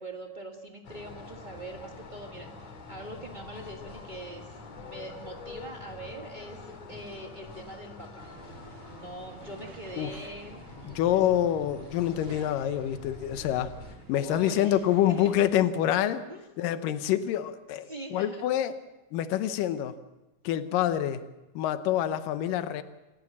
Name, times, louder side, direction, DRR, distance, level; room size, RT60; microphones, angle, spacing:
voice 1, 0.0-2.5 2.9-4.5 4.8-8.3 8.9-11.2 14.2-14.8 15.2-15.3 16.3-16.7 17.9-18.4, right 1 dB, 65° right, 2 dB, 0.4 m, -43 dB
sound 1, 0.8-14.0, left 4 dB, 55° left, 3.4 m, -46 dB
sound 2, 8.2-15.7, right 4 dB, 45° right, 2.5 m, -50 dB
voice 2, 10.9-13.7 14.1-16.3 16.6-18.8 19.1-19.9 20.4-21.2 21.6-22.8, left 11 dB, 85° left, 11 dB, 2.6 m, -26 dB
28.0 x 14.5 x 7.3 m, 1.1 s
omnidirectional pair, 3.8 m